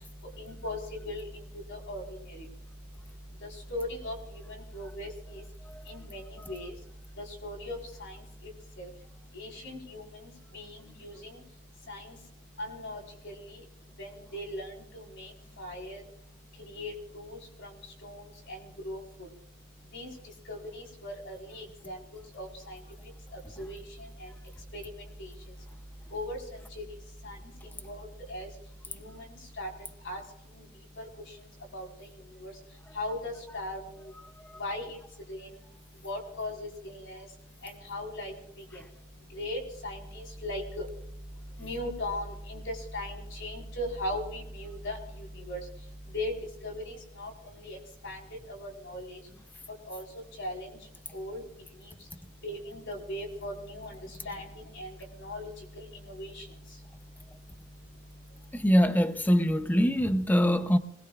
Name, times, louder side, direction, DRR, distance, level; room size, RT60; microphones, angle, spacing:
voice 1, 0.4-0.8 1.0-1.2 1.7-2.0 3.7-4.1 4.7-5.4 5.9-6.2 6.5-6.7 7.2-8.1 8.8-8.9 9.4-10.0 10.5-10.6 11.0-11.1 11.9-12.0 12.6-13.4 14.0-14.7 15.2-15.3 15.6-16.0 16.7-17.7 18.0-18.2 18.5-18.6 18.8-19.0 19.9-20.1 20.5-22.0 22.3-22.5 23.6-23.8 24.7-24.8 25.2-25.3 26.1-26.4 26.8-26.9 27.2-27.4 27.9-28.0 28.3-28.5 29.0-29.1 29.6-29.7 30.1-30.2 31.7-31.9 32.4-32.5 33.0-33.8 34.6-35.0 35.3-35.5 36.0-37.2 37.6-38.3 39.4-40.8 41.6-45.0 45.5-45.6 46.1-46.3 46.6-47.3 47.6-47.8 48.0-48.2 48.5-49.2 49.9-50.0 50.4-50.7 51.1-51.4 52.4-53.9 54.2-54.4 54.8-54.9 55.2-55.5 55.8-56.4, left 1 dB, 60° left, 4.4 m, -37 dB
voice 2, 58.5-60.8, equal, 10° left, 0.6 m, -23 dB
25.5 x 20.0 x 2.4 m
head